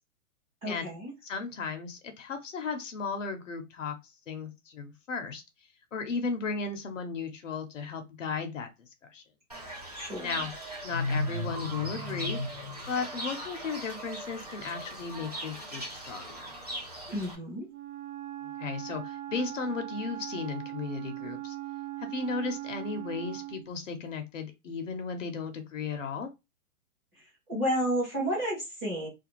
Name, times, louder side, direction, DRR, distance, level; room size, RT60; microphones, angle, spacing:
voice 1, 0.6-1.1 9.9-10.3 17.1-17.7 27.5-29.1, equal, 10° right, 0.8 m, -31 dB
voice 2, 1.2-4.0 4.3-5.4 5.9-8.7 9.1-9.2 10.2-10.5 10.8-12.4 12.9-16.6 18.4-21.6 22.0-26.3, left 4 dB, 60° left, 0.7 m, -35 dB
Fowl / Bird, 9.5-17.3, equal, 30° right, 0.4 m, -37 dB
Wind instrument woodwind instrument, 17.7-23.7, right 14 dB, 85° right, 0.6 m, -40 dB
2.5 x 2.2 x 2.9 m
hypercardioid pair, 170°, 44 cm